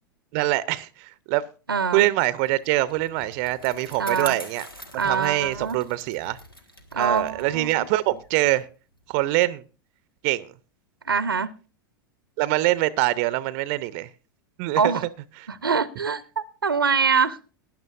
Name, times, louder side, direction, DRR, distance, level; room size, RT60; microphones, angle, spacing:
voice 1, 0.3-1.4 1.9-4.6 5.0-6.4 6.9-8.7 9.1-9.6 10.2-10.5 12.4-14.1 14.6-14.9 15.4-15.5, right 17 dB, 40° right, 0.6 m, -24 dB
voice 2, 1.7-2.0 4.0-4.4 5.0-5.8 6.9-7.9 11.1-11.5 14.8-15.0 15.5-17.4, right 5 dB, 80° right, 0.7 m, -24 dB
Bicycle, 2.5-9.2, equal, 85° left, 1.4 m, -44 dB
18.5 x 10.5 x 2.5 m
figure-of-eight pair, 90°, 12 cm